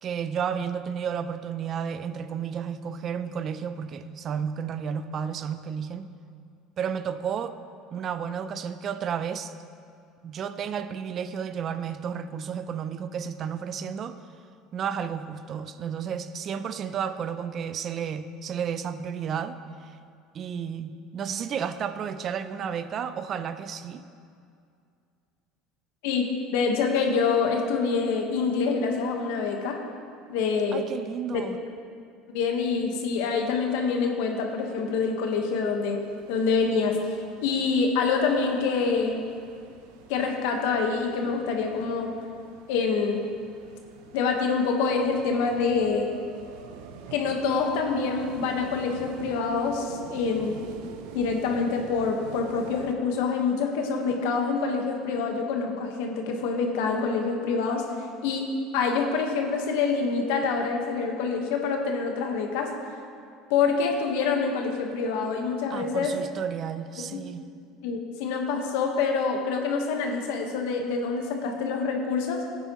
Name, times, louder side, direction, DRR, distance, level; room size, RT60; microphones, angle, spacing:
voice 1, 0.0-6.1 6.8-7.6 7.9-9.5 10.2-14.2 14.7-19.9 20.3-24.0 30.7-31.6 65.7-67.4, right 7 dB, 40° right, 12 dB, 0.5 m, -32 dB
voice 2, 26.5-29.8 30.3-30.8 31.3-31.4 32.3-36.0 36.3-39.2 40.1-42.1 42.7-43.2 44.1-46.1 47.1-50.6 51.1-57.8 58.2-58.5 58.7-62.7 63.5-66.1 67.0-67.2 67.8-72.4, left 5 dB, 80° left, 2 dB, 1.3 m, -26 dB
sound 1, 36.0-52.9, right 6 dB, 80° right, 0.7 m, -44 dB
14.0 x 9.2 x 3.1 m, 2.4 s
supercardioid pair, 115°, 0 cm